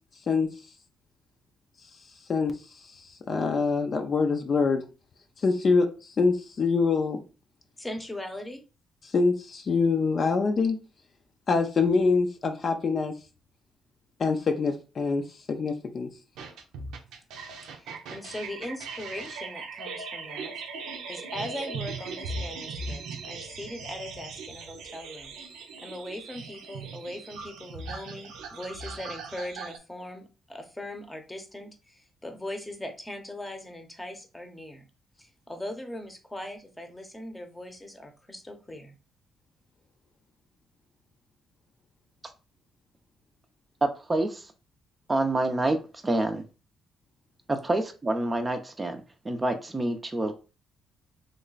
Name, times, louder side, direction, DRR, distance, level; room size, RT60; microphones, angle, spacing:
voice 1, 3.3-4.8 5.4-5.9 6.2-7.2 9.1-10.8 11.5-13.1 14.2-15.2 15.5-16.1, left 4 dB, 45° left, 6 dB, 0.5 m, -24 dB
voice 2, 7.8-8.6 17.8-20.6 21.1-25.3 25.8-34.8 35.2-39.0, left 1 dB, 10° left, 6 dB, 0.8 m, -40 dB
sound 1, 16.4-29.8, right 4 dB, 90° right, 0.6 m, -39 dB
voice 3, 43.8-44.4 45.1-45.8 46.0-46.4 47.5-50.3, right 2 dB, 25° right, 6 dB, 0.5 m, -27 dB
3.2 x 2.1 x 3.9 m, 0.32 s
cardioid pair, 90°, 0 cm